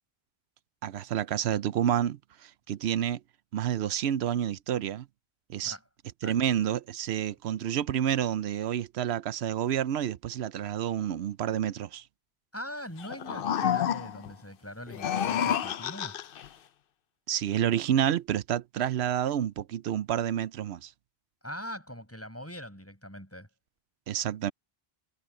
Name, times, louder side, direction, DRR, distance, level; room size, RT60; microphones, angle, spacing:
voice 1, 0.8-3.2 3.5-5.1 5.5-5.8 6.2-12.0 17.3-20.9 24.1-24.5, right 10 dB, 85° right, 0.9 m, -29 dB
voice 2, 12.5-16.2 21.4-23.5, equal, 15° left, 7.8 m, -42 dB
sound 1, 13.0-14.3 14.9-16.5, left 9 dB, 65° left, 0.8 m, -29 dB
omnidirectional pair, 1.1 m